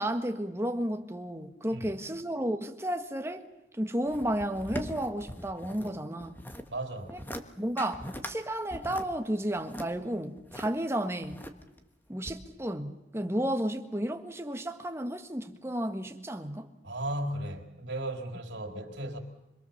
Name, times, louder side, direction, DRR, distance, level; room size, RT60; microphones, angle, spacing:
voice 1, 0.0-3.5 3.7-6.4 7.1-7.2 7.6-11.4 12.1-16.7, right 1 dB, 15° right, 1.6 m, -32 dB
sound 1, 4.1-5.9 6.2-6.7 7.1-7.4 7.8-8.3 8.7-10.7 11.2-11.8 12.2-12.3, equal, 10° left, 1.5 m, -40 dB
voice 2, 6.7-7.1 16.8-19.2, right 1 dB, 75° right, 4.0 m, -35 dB
26.0 x 22.0 x 7.3 m
head